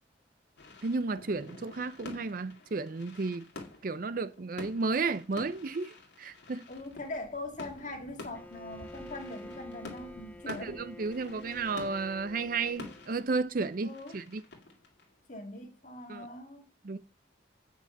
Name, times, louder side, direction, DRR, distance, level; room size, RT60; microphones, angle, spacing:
sound 1, 0.6-15.9, left 3 dB, 70° left, 2.1 m, -49 dB
voice 1, 0.8-3.5 3.8-6.6 10.5-14.4 16.1-16.3 16.8-17.0, right 4 dB, 50° right, 0.5 m, -33 dB
voice 2, 6.7-10.8 11.2-11.6 13.8-14.2 15.3-16.7, left 2 dB, 40° left, 1.9 m, -42 dB
Thunder, 6.7-12.8, equal, 20° right, 2.0 m, -57 dB
Bowed string instrument, 8.3-13.1, left 1 dB, 10° left, 0.5 m, -49 dB
8.0 x 6.1 x 5.3 m
head